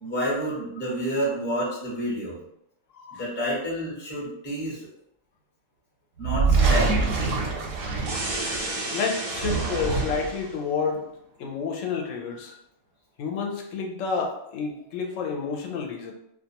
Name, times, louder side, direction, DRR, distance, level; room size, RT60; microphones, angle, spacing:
voice 1, 0.0-2.4 3.2-4.9 6.2-7.0, right 1 dB, 10° left, -5 dB, 0.6 m, -29 dB
sound 1, 6.2-8.8 9.2-10.4, right 4 dB, 90° right, 1.0 m, -25 dB
sound 2, 8.1-10.5, right 2 dB, 55° right, 0.4 m, -32 dB
voice 2, 8.9-11.1 11.4-12.5 13.2-16.1, left 5 dB, 85° left, 1 dB, 0.9 m, -30 dB
2.3 x 2.3 x 2.8 m, 0.77 s
omnidirectional pair, 1.3 m